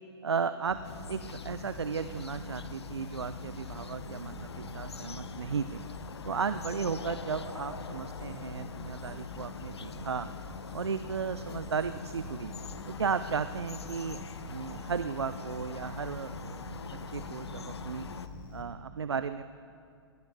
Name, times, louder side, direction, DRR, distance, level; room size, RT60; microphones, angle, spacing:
voice 1, 0.2-0.8 1.1-5.8 6.2-10.3 10.7-12.5 12.9-14.2 14.5-18.1 18.5-19.4, right 6 dB, 80° right, 12 dB, 0.6 m, -35 dB
sound 1, 0.7-18.6, left 2 dB, 50° left, 3.4 m, -44 dB
sound 2, 0.8-18.3, left 5 dB, 80° left, 1.0 m, -44 dB
22.0 x 18.0 x 6.6 m, 2.5 s
figure-of-eight pair, 110°, 14 cm